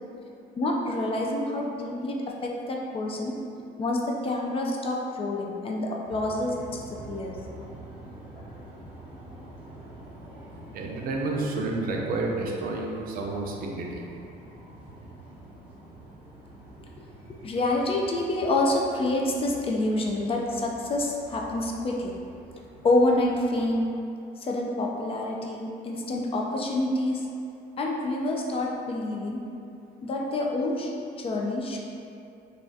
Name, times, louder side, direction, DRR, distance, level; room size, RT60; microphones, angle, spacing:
voice 1, 0.6-3.3 3.8-7.4 17.3-22.1 22.8-24.0 24.4-27.3 27.8-29.4 30.0-30.9 31.2-31.8, left 2 dB, 35° left, 0 dB, 0.3 m, -27 dB
sound 1, 6.0-23.8, right 1 dB, 5° right, 0.9 m, -46 dB
voice 2, 10.7-14.0, right 2 dB, 60° right, 0 dB, 0.5 m, -30 dB
3.3 x 2.3 x 2.6 m, 2.5 s
cardioid pair, 110°, 17 cm